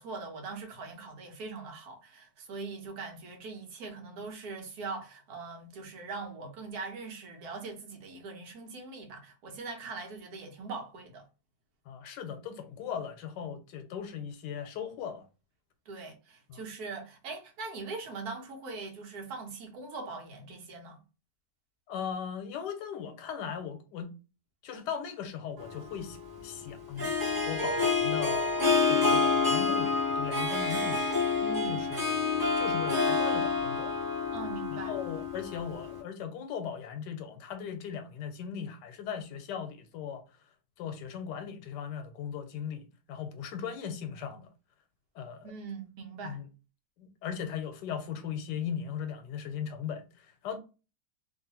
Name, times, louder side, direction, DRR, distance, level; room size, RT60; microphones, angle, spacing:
voice 1, 0.0-11.3 15.9-21.0 31.4-31.8 34.3-35.0 45.4-46.4, right 4 dB, 65° right, 1.3 m, -41 dB
voice 2, 11.9-15.2 16.5-16.6 21.9-24.1 24.6-26.2 26.4-27.1 27.5-28.5 28.9-31.1 31.6-32.1 32.6-34.0 34.7-40.2 40.8-44.5 45.2-45.5 46.2-46.4 47.0-50.6, left 7 dB, 85° left, 1.2 m, -38 dB
Harp, 25.6-36.0, left 4 dB, 15° right, 1.4 m, -28 dB
3.0 x 2.4 x 2.8 m
omnidirectional pair, 1.8 m